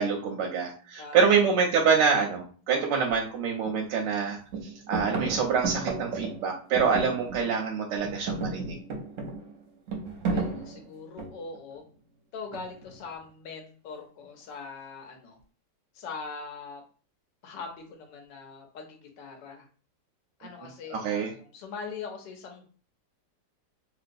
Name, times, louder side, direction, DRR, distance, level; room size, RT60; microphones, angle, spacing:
voice 1, 0.0-4.4 4.9-8.8 20.9-21.3, right 6 dB, 90° right, 0 dB, 1.2 m, -26 dB
voice 2, 1.0-1.4 10.2-11.8 12.3-15.4 15.9-16.8 17.4-19.7 20.4-22.7, left 4 dB, 85° left, 3 dB, 1.4 m, -41 dB
sound 1, 3.1-3.2 3.7-4.2 4.5-7.7 8.0-11.6 12.5-13.0, right 3 dB, 60° right, 0.9 m, -33 dB
3.0 x 2.9 x 2.5 m, 0.40 s
omnidirectional pair, 1.9 m